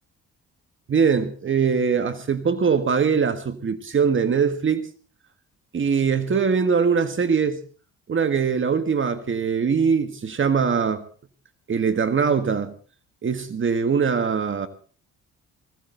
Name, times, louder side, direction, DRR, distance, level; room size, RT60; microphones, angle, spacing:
voice 1, 0.9-4.9 5.7-7.6 8.1-11.0 11.7-12.7 13.2-14.7, right 6 dB, 40° right, 1.6 m, -22 dB
20.0 x 17.0 x 3.9 m
cardioid pair, 90°, 30 cm